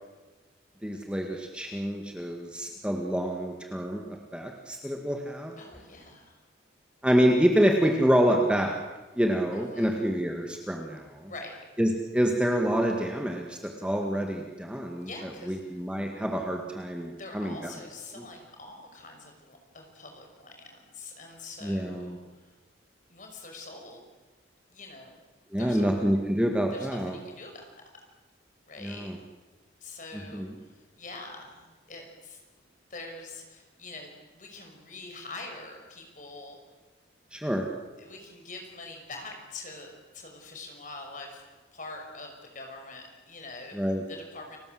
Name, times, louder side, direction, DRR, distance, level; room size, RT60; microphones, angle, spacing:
voice 1, 0.8-4.0 4.3-5.5 7.0-8.8 9.2-11.3 11.8-17.7 18.2-18.3 21.6-22.2 25.5-27.2 28.8-29.2 30.1-30.5 37.3-37.7 43.7-44.0, equal, 5° right, 2 dB, 1.9 m, -27 dB
voice 2, 5.6-6.3 9.5-10.0 11.2-11.6 15.0-15.6 17.1-22.2 23.1-24.0 24.7-25.2 25.6-25.9 26.7-27.6 28.7-29.1 29.8-30.5 31.0-32.4 32.9-36.6 38.0-41.4 41.7-44.6, left 3 dB, 40° left, 3 dB, 5.8 m, -44 dB
30.0 x 19.5 x 7.8 m, 1.2 s
head